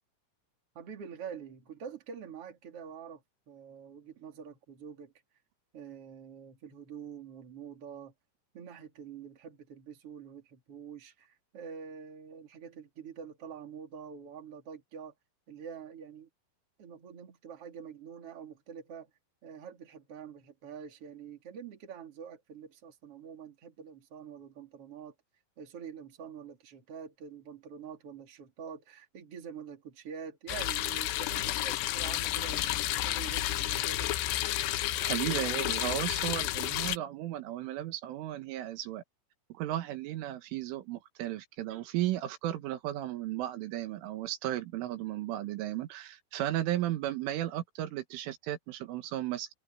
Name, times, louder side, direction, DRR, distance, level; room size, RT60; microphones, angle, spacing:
voice 1, 0.7-5.1 5.7-8.1 8.5-15.1 15.5-16.3 16.8-19.1 19.4-25.1 25.6-32.7 33.0-34.1, right 7 dB, 35° right, 3.2 m, -46 dB
sound 1, 30.5-37.0, left 14 dB, 75° left, 2.7 m, -31 dB
voice 2, 35.0-39.0 39.5-49.5, right 13 dB, 75° right, 4.0 m, -35 dB
omnidirectional pair, 5.7 m